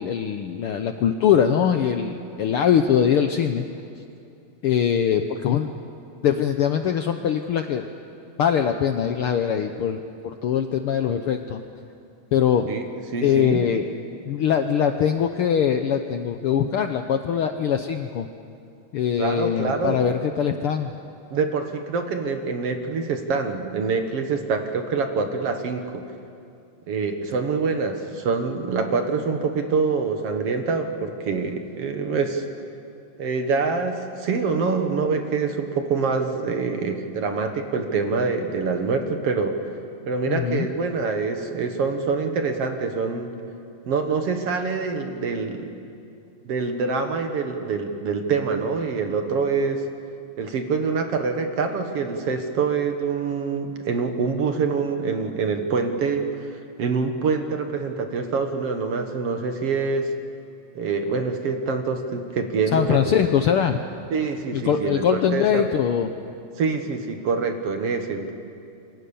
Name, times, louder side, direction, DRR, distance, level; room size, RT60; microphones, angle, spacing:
voice 1, 0.0-3.6 4.6-5.7 6.2-7.9 8.4-11.6 12.3-12.7 13.2-13.9 14.2-18.3 18.9-20.9 40.3-40.7 62.7-63.8 64.5-66.2, left 8 dB, 70° left, 7 dB, 1.4 m, -22 dB
voice 2, 13.1-13.6 19.2-20.0 21.3-26.1 26.9-32.5 33.2-39.6 40.1-43.3 43.9-45.8 46.5-49.8 50.4-56.2 56.8-60.1 60.8-63.1 64.1-65.6 66.6-68.3, right 4 dB, 55° right, 6 dB, 2.3 m, -25 dB
28.0 x 24.0 x 7.0 m, 2.5 s
omnidirectional pair, 3.4 m